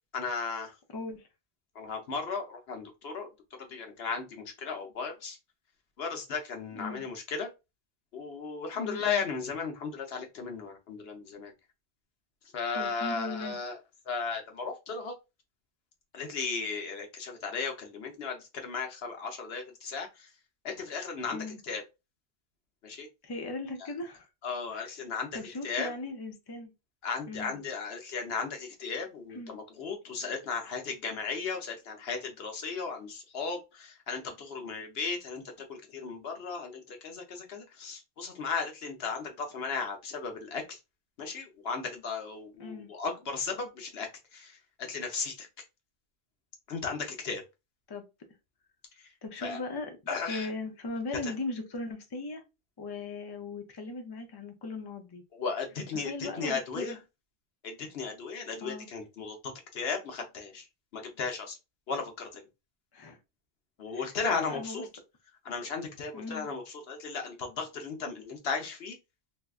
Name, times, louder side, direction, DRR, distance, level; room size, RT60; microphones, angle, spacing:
voice 1, 0.1-0.7 1.7-3.3 3.7-5.4 6.0-7.5 8.1-11.5 12.5-13.8 14.1-15.1 16.1-20.3 20.6-21.4 21.6-21.8 22.8-23.1 24.4-25.3 25.6-25.9 27.0-35.4 35.7-40.8 41.2-44.6 44.9-45.5 46.7-47.4 49.4-49.6 50.1-50.5 51.2-51.3 55.3-57.0 57.6-60.7 60.9-61.6 61.9-62.4 63.8-64.9 65.4-69.0, left 5 dB, 80° left, 1.0 m, -35 dB
voice 2, 0.9-1.3 6.7-7.0 8.8-9.3 12.7-13.6 21.3-21.6 23.2-24.3 24.7-24.9 25.3-26.7 27.3-27.6 29.3-29.5 42.6-42.9 47.9-48.1 49.2-49.9 50.3-52.4 52.8-55.2 55.9-57.0 58.6-58.9 62.9-63.2 63.9-64.8 66.1-66.5, left 3 dB, 30° left, 0.5 m, -38 dB
3.4 x 2.7 x 2.3 m
omnidirectional pair, 1.0 m